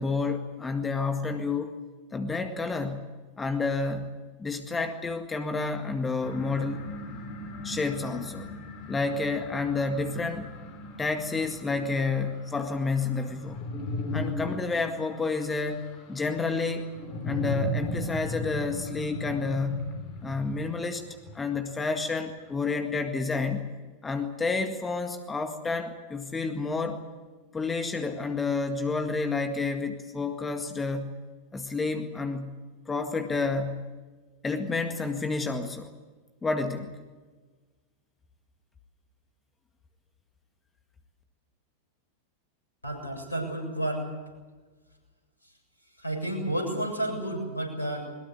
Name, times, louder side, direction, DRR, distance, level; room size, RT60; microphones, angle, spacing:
voice 1, 0.0-1.7 2.1-3.0 3.4-4.1 4.4-6.9 7.6-8.5 8.9-10.5 11.0-13.6 14.1-16.9 17.2-19.9 20.2-21.0 21.3-23.7 24.0-27.0 27.5-31.2 31.5-32.6 32.9-33.9 34.4-35.9 36.4-36.9, left 4 dB, 15° left, 6 dB, 1.9 m, -30 dB
sound 1, 6.2-21.7, left 2 dB, 40° left, 4.5 m, -37 dB
voice 2, 42.8-44.1 46.0-48.0, right 1 dB, 80° left, 4 dB, 7.1 m, -31 dB
22.5 x 20.5 x 8.3 m, 1.3 s
figure-of-eight pair, 90°, 0 cm